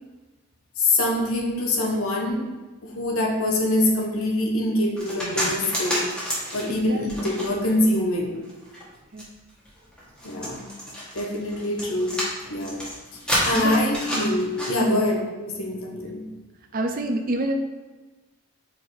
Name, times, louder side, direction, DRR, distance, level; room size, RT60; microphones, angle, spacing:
voice 1, 0.8-2.5 2.8-6.1 6.5-8.3 10.2-10.7 11.1-12.2 12.5-12.8 13.4-16.2, left 1 dB, 70° left, 0 dB, 1.1 m, -24 dB
sound 1, 5.0-7.8 8.3-14.7, equal, 5° left, 1.4 m, -29 dB
voice 2, 16.7-17.5, right 1 dB, 40° right, 5 dB, 0.6 m, -26 dB
4.6 x 4.5 x 4.7 m, 1.2 s
head